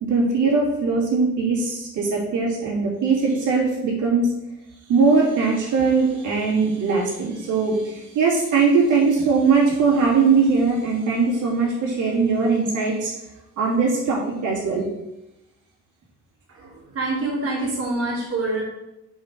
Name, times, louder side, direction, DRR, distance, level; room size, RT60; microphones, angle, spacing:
voice 1, 0.0-4.3 4.9-13.1 13.6-14.9, right 4 dB, 80° right, -5 dB, 2.8 m, -20 dB
voice 2, 16.5-18.6, right 2 dB, 50° right, -6 dB, 2.7 m, -26 dB
5.4 x 5.2 x 6.1 m, 0.90 s
cardioid pair, 90°, 30 cm